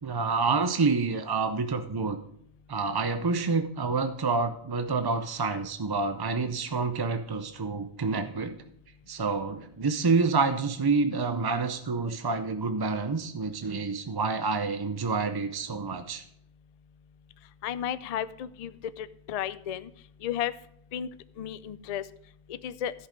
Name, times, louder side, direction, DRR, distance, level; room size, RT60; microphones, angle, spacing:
voice 1, 0.0-2.2 2.7-8.6 9.1-16.2, right 4 dB, 35° right, 9 dB, 0.4 m, -28 dB
voice 2, 17.6-18.7 19.0-19.9 20.2-20.5 20.9-21.1 21.4-22.0 22.5-22.9, left 10 dB, 60° left, 15 dB, 0.4 m, -33 dB
13.5 x 5.6 x 5.1 m, 0.70 s
omnidirectional pair, 1.2 m